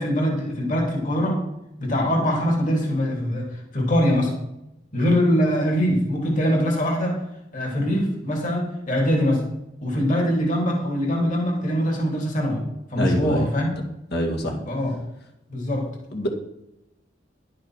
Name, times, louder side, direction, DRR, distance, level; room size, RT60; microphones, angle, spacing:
voice 1, 0.0-1.4 1.8-4.3 4.9-7.2 7.5-9.4 9.8-12.6 12.9-13.7 14.7-15.0 15.5-15.9, equal, 45° left, -1 dB, 3.3 m, -23 dB
voice 2, 13.0-13.5 14.1-14.6 16.1-16.3, equal, 65° left, 3 dB, 2.0 m, -25 dB
11.5 x 6.5 x 6.3 m, 0.86 s
head